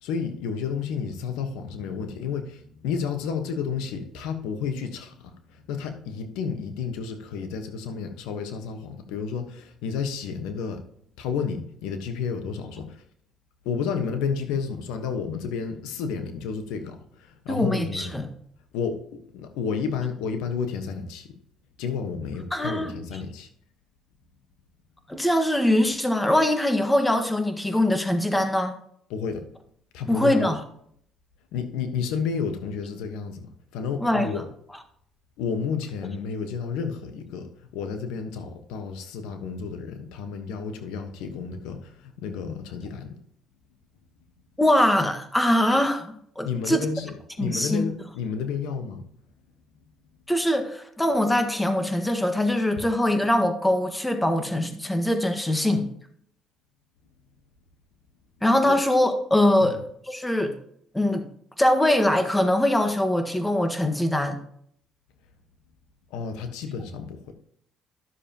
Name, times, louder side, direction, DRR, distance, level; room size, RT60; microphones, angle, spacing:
voice 1, 0.0-10.8 11.2-13.0 13.6-18.1 18.7-21.3 21.8-23.5 29.1-29.5 29.9-30.5 31.5-34.5 35.4-43.2 46.4-49.1 58.7-58.8 59.6-59.8 66.1-67.3, left 6 dB, 90° left, 7 dB, 1.2 m, -31 dB
voice 2, 17.5-18.3 22.5-22.9 25.1-28.8 30.1-30.6 34.0-34.3 44.6-46.8 47.4-47.8 50.3-55.9 58.4-60.5 60.9-61.2 61.6-64.4, left 1 dB, 10° left, 6 dB, 1.5 m, -22 dB
12.5 x 7.1 x 2.9 m, 0.66 s
supercardioid pair, 85°, 0 cm